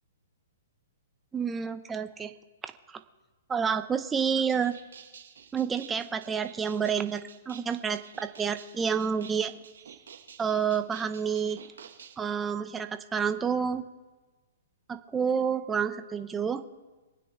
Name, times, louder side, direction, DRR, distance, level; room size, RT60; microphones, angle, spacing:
voice 1, 1.3-2.3 2.6-2.7 3.5-4.7 5.5-9.5 10.4-11.6 12.2-13.9 14.9-16.6, right 7 dB, 10° right, 9 dB, 0.8 m, -29 dB
sound 1, 4.2-12.2, right 7 dB, 80° right, 2.1 m, -50 dB
26.5 x 9.3 x 4.4 m, 1.2 s
hypercardioid pair, 155°, 0 cm